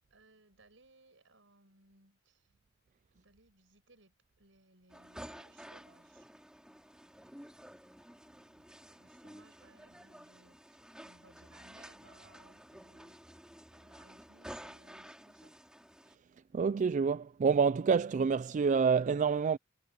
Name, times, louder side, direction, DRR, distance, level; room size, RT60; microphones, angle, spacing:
voice 1, 0.1-2.5 3.1-6.3 8.9-13.4 13.7-15.6, right 2 dB, 70° right, 7.0 m, -64 dB
sound 1, 4.9-16.2, equal, 5° right, 4.0 m, -52 dB
voice 2, 16.5-19.6, right 5 dB, 40° right, 0.3 m, -27 dB
head